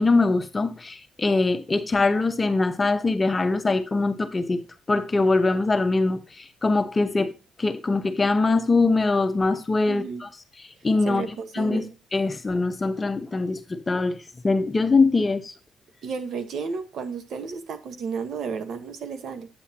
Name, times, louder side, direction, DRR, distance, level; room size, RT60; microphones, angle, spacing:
voice 1, 0.0-7.3 7.6-10.3 10.8-11.2 11.5-15.5, left 3 dB, 25° left, 1.0 m, -23 dB
voice 2, 9.9-10.2 11.0-11.9 16.0-19.5, right 5 dB, 65° right, 1.3 m, -32 dB
8.5 x 7.7 x 2.9 m
cardioid pair, 90°, 0 cm